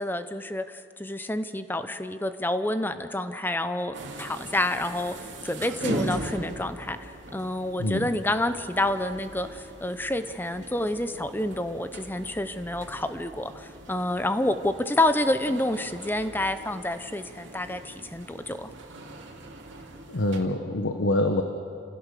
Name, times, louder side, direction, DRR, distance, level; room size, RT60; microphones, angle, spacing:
voice 1, 0.0-7.0 7.3-18.7, left 1 dB, 10° left, 10 dB, 0.7 m, -28 dB
sound 1, 3.9-20.4, right 1 dB, 80° right, 2.5 m, -40 dB
voice 2, 20.1-21.4, left 1 dB, 90° left, 5 dB, 1.1 m, -25 dB
29.0 x 16.0 x 6.8 m, 2.6 s
head